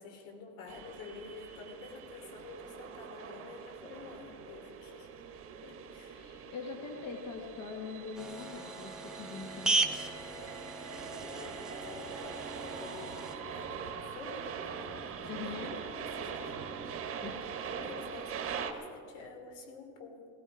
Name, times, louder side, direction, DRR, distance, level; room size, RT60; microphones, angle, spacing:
voice 1, 0.0-5.2 5.6-6.2 10.2-16.7 17.1-20.3, left 4 dB, 70° left, 3 dB, 3.4 m, -50 dB
sound 1, 0.7-18.7, right 6 dB, 30° right, 1.3 m, -43 dB
voice 2, 6.1-10.0 15.2-15.8 17.2-17.5, left 5 dB, 35° left, 3 dB, 1.4 m, -43 dB
sound 2, 8.1-13.4, right 2 dB, ahead, 0.3 m, -36 dB
17.5 x 16.5 x 4.9 m, 2.4 s
supercardioid pair, 150°, 44 cm